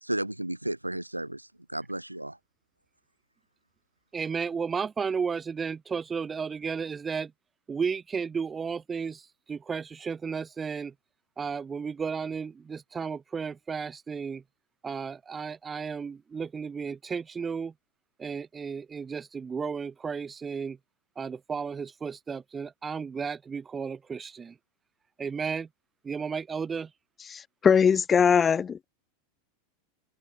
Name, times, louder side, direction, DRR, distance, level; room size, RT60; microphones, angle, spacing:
voice 1, 0.0-2.4, right 1 dB, 85° right, 1.0 m, -33 dB
voice 2, 4.1-7.3 7.7-10.9 11.4-14.4 14.8-17.7 18.2-20.8 21.2-24.5 25.2-25.7 26.0-26.9, right 6 dB, 20° right, 1.5 m, -33 dB
voice 3, 27.3-28.9, left 7 dB, 20° left, 0.4 m, -21 dB
open air
figure-of-eight pair, 85°, 0 cm